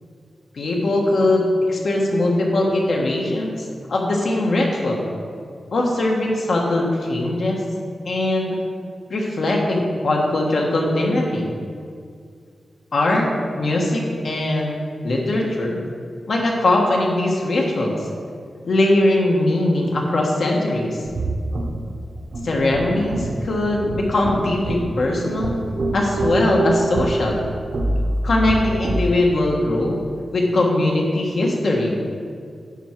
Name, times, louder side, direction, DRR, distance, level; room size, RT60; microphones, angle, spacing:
voice 1, 0.5-3.5 3.9-5.0 5.7-7.6 8.0-8.6 9.1-11.5 12.9-13.3 13.5-14.7 15.0-15.8 16.3-18.0 18.6-21.0 22.4-25.6 25.9-27.4 28.2-30.0 30.3-32.0, left 1 dB, 65° left, -1 dB, 1.4 m, -20 dB
sound 1, 21.0-29.1, right 2 dB, 60° right, 0.9 m, -25 dB
10.0 x 4.9 x 4.6 m, 2.2 s
wide cardioid pair, 150°, 0 cm